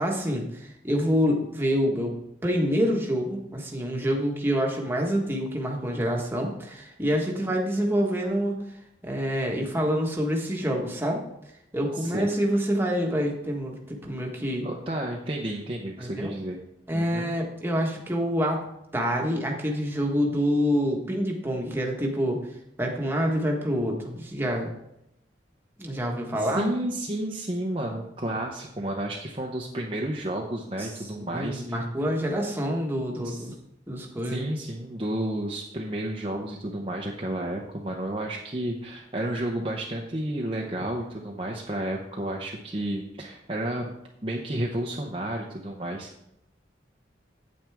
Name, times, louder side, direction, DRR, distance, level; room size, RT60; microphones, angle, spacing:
voice 1, 0.0-2.1 2.4-8.6 9.0-11.2 11.7-14.7 16.0-16.3 16.9-18.6 18.9-22.4 22.8-24.7 25.8-26.7 30.8-30.9 31.3-33.5 33.9-34.4, equal, 10° right, 0 dB, 1.4 m, -27 dB
voice 2, 11.9-12.3 14.6-16.6 16.9-17.3 26.3-31.8 33.2-33.5 34.2-43.9 44.2-46.3, right 1 dB, 30° right, -1 dB, 0.8 m, -31 dB
9.0 x 8.7 x 3.5 m, 0.82 s
head